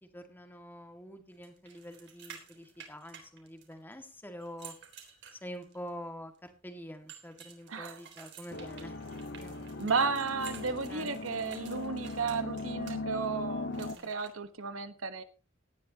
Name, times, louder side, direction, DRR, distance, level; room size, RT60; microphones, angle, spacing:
voice 1, 0.1-4.7 5.4-9.0 9.2-9.7 10.9-11.2 13.9-14.1, equal, 10° left, 6 dB, 2.0 m, -46 dB
sound 1, 1.4-3.9 4.4-5.9 7.1-13.0 13.7-14.3, right 8 dB, 60° right, 3.7 m, -52 dB
voice 2, 7.7-8.0 9.8-15.2, right 4 dB, 90° right, 10 dB, 1.3 m, -33 dB
sound 2, 8.5-14.0, left 2 dB, 60° left, 1.0 m, -39 dB
18.0 x 11.0 x 2.9 m, 0.32 s
head